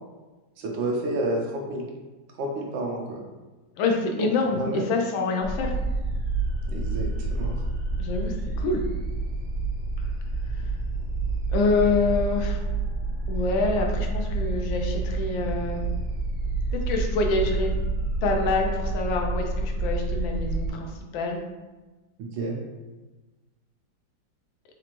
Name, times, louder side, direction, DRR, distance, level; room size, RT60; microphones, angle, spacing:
voice 1, 0.6-1.9 2.4-3.2 4.2-4.3 4.6-4.8 6.7-7.6 22.3-22.6, right 1 dB, 85° right, 0 dB, 1.4 m, -30 dB
voice 2, 3.8-5.7 8.0-8.8 10.0-10.1 10.5-10.7 11.5-12.6 13.3-15.8 16.7-17.7 18.2-21.4, left 3 dB, 85° left, 2 dB, 1.4 m, -26 dB
sound 1, 5.4-20.7, right 2 dB, 50° left, 1.9 m, -28 dB
4.5 x 2.5 x 2.9 m, 1.2 s
omnidirectional pair, 2.0 m